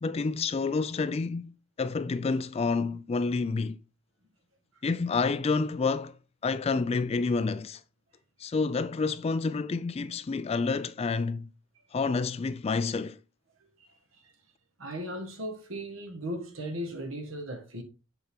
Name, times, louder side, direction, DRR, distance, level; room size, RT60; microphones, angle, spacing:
voice 1, 0.0-3.8 4.8-6.2 6.4-7.8 8.4-11.5 11.9-13.2, left 4 dB, 30° left, 0.3 m, -29 dB
voice 2, 13.6-14.3 14.8-17.8, equal, 70° right, 1.6 m, -37 dB
7.8 x 4.9 x 3.5 m
head